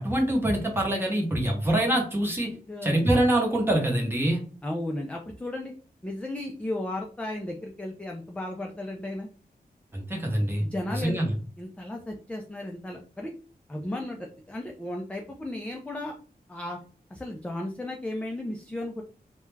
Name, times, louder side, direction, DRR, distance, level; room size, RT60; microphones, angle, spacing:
voice 1, 0.0-2.5 2.8-4.4 9.9-10.6 10.9-11.3, right 1 dB, 15° right, 0 dB, 0.8 m, -25 dB
voice 2, 2.7-3.0 4.6-5.7 6.0-9.3 10.6-11.2 11.6-13.3 13.7-16.1 16.5-16.8 17.1-19.0, left 1 dB, 10° left, 1 dB, 0.3 m, -34 dB
2.3 x 2.1 x 3.1 m, 0.39 s
wide cardioid pair, 140°, 16 cm